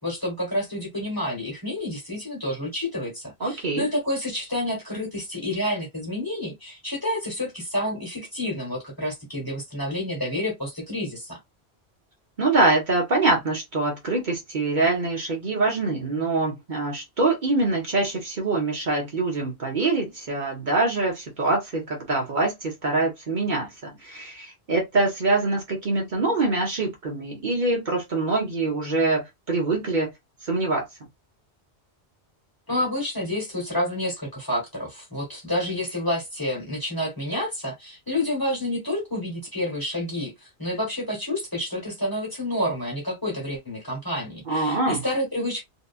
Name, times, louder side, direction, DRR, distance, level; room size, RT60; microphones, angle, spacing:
voice 1, 0.0-11.4 32.7-45.6, left 1 dB, 20° left, 1.1 m, -29 dB
voice 2, 3.4-3.9 12.4-30.1 30.4-30.8 44.5-45.0, right 2 dB, 50° right, 0.9 m, -24 dB
2.8 x 2.3 x 2.3 m
omnidirectional pair, 1.1 m